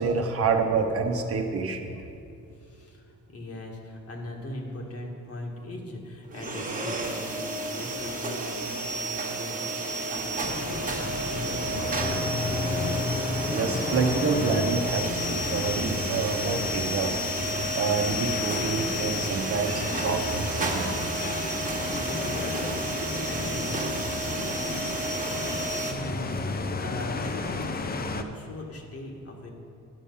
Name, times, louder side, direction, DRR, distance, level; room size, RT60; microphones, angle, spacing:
voice 1, 0.0-2.1 13.5-17.2 17.7-20.9, right 4 dB, 50° right, 4 dB, 1.0 m, -28 dB
voice 2, 2.5-12.5 22.2-24.1 25.8-29.5, left 1 dB, 50° left, 1 dB, 1.8 m, -40 dB
sound 1, 6.3-25.9, right 1 dB, 25° right, 1.5 m, -31 dB
sound 2, 10.4-28.2, left 3 dB, 30° left, 0.6 m, -33 dB
10.5 x 7.0 x 5.5 m, 2.5 s
cardioid pair, 90°, 30 cm